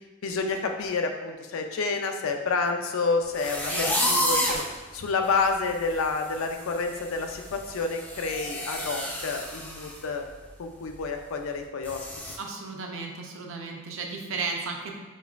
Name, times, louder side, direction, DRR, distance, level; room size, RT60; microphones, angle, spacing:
voice 1, 0.2-4.6 4.9-10.2 10.6-12.1, left 4 dB, 70° left, 5 dB, 0.5 m, -29 dB
sound 1, 3.4-4.7 5.3-5.4 5.8-6.0 6.3-10.0 10.3-10.5 10.9-11.0 11.8-12.4, equal, 10° left, 0.4 m, -30 dB
voice 2, 12.4-15.0, right 4 dB, 70° right, 1 dB, 0.6 m, -34 dB
5.2 x 3.0 x 2.5 m, 1.2 s
head